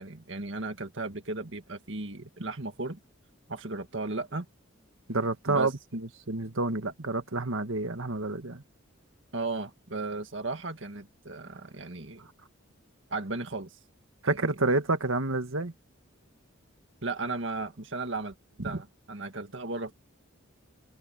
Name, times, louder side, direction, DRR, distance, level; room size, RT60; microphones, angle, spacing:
voice 1, 0.0-3.0 3.5-4.5 5.5-5.7 9.3-12.3 13.1-13.8 14.3-14.8 17.0-18.3 18.6-19.9, right 3 dB, 65° right, 1.9 m, -35 dB
voice 2, 5.1-5.7 6.3-8.6 14.2-15.7 18.7-18.8, right 3 dB, 80° right, 1.9 m, -28 dB
head